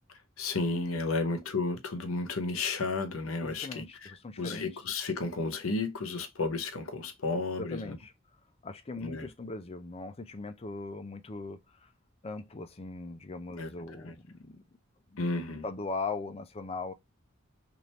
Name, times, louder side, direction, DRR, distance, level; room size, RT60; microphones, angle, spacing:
voice 1, 0.1-8.0 9.0-9.3 13.6-14.1 15.2-15.6, left 3 dB, 85° left, 0.8 m, -33 dB
voice 2, 3.4-4.7 7.6-8.1 8.6-11.9 12.2-14.6 15.6-16.9, left 3 dB, 30° left, 0.5 m, -39 dB
3.3 x 2.6 x 4.1 m
head